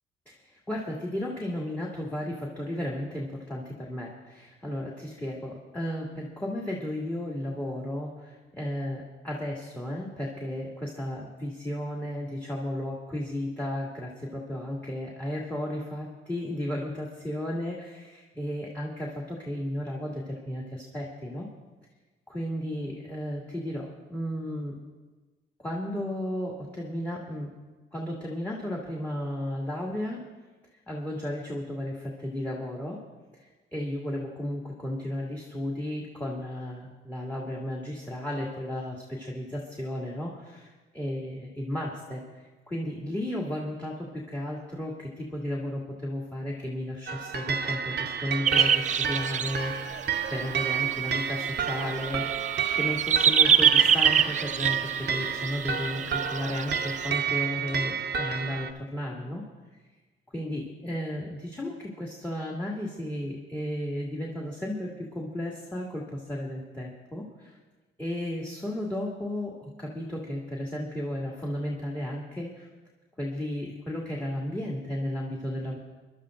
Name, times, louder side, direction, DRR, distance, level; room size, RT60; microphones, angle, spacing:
voice 1, 0.3-21.5 22.3-24.8 25.6-27.5 27.9-30.2 30.9-33.0 33.4-42.2 42.7-59.4 60.3-67.6 68.0-72.7 73.2-75.8, left 1 dB, 10° left, -2 dB, 2.2 m, -34 dB
sound 1, 47.1-58.7, right 7 dB, 55° right, 0.9 m, -30 dB
sound 2, 48.5-49.6 50.0-50.1 50.2-57.1, right 8 dB, 40° right, 0.5 m, -24 dB
26.0 x 12.0 x 2.5 m, 1.2 s
cardioid pair, 90°, 20 cm